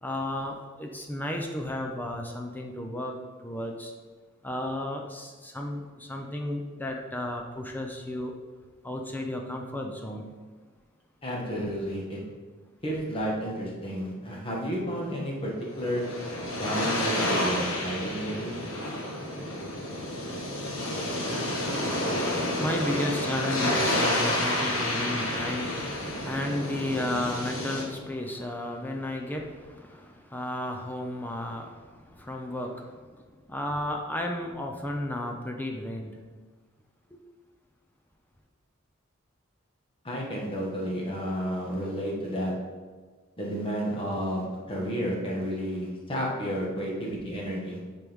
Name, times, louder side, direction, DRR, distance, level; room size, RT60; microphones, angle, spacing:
voice 1, 0.0-3.9 4.4-8.3 8.8-10.3 21.9-36.2 37.1-37.2, left 1 dB, 10° left, 2 dB, 0.6 m, -33 dB
voice 2, 11.2-12.3 12.8-16.3 16.6-18.6 19.6-19.7 40.0-42.7 43.4-47.8, equal, 25° left, -3 dB, 1.6 m, -31 dB
sound 1, 15.6-27.8, left 1 dB, 70° left, 1.5 m, -30 dB
8.8 x 4.6 x 3.6 m, 1.4 s
head